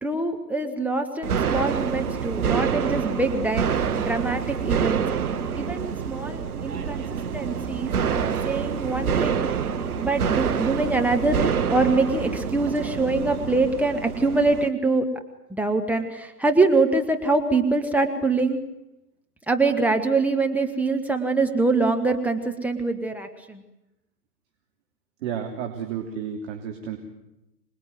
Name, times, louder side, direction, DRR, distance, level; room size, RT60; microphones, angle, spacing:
voice 1, 0.0-3.7 4.0-5.0 5.5-9.5 10.0-15.1 15.5-18.6 19.5-23.6, right 3 dB, 5° right, 3 dB, 1.2 m, -24 dB
sound 1, 1.2-14.7, right 7 dB, 60° right, 1.8 m, -27 dB
voice 2, 25.2-27.0, right 8 dB, 45° right, 4 dB, 3.2 m, -32 dB
26.0 x 20.5 x 9.4 m, 0.95 s
figure-of-eight pair, 120°, 49 cm